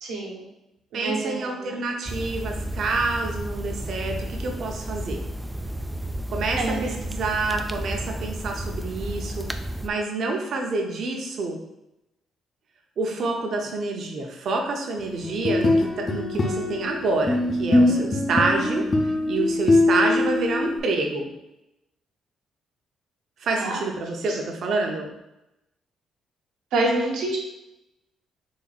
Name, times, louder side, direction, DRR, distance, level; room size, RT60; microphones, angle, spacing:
voice 1, 0.0-0.5 0.9-1.8 6.6-7.0 23.6-23.8 26.7-27.4, right 2 dB, 90° right, -2 dB, 1.2 m, -27 dB
voice 2, 0.9-5.2 6.3-11.6 13.0-18.9 19.3-21.3 23.4-25.1, right 3 dB, 60° right, 2 dB, 0.8 m, -27 dB
sound 1, 2.1-9.9, right 1 dB, 10° right, 0.3 m, -32 dB
sound 2, 15.2-20.8, left 2 dB, 30° left, 0.7 m, -22 dB
4.1 x 2.7 x 4.1 m, 0.90 s
cardioid pair, 90°, 0 cm